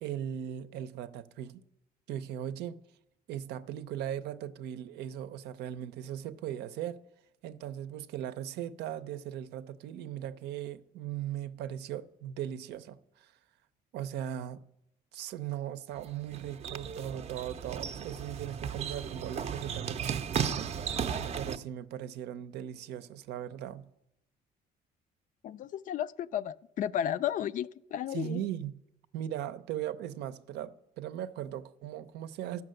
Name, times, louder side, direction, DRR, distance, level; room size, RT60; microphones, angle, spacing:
voice 1, 0.0-1.6 2.1-2.8 3.3-7.0 7.4-13.3 13.9-14.6 15.1-20.7 21.3-23.9 28.1-28.8 29.1-32.6, right 10 dB, 80° right, 0.6 m, -38 dB
sound 1, 15.9-21.6, right 7 dB, 40° right, 0.5 m, -35 dB
voice 2, 25.4-28.4, left 10 dB, 50° left, 0.4 m, -33 dB
12.0 x 5.9 x 7.7 m
cardioid pair, 110°, 17 cm